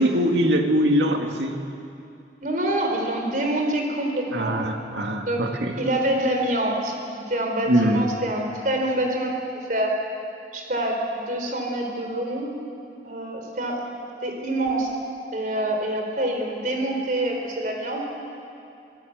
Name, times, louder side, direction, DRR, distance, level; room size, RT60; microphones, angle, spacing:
voice 1, 0.0-1.6 4.3-5.8 7.7-8.1, equal, 85° right, 3 dB, 2.2 m, -22 dB
voice 2, 2.4-4.6 5.3-5.5 5.8-6.9 7.3-9.3 9.7-10.0 10.5-12.5 13.0-13.8 14.2-14.9 15.3-18.1, right 1 dB, 50° right, 2 dB, 4.1 m, -26 dB
25.0 x 18.0 x 8.0 m, 2.6 s
head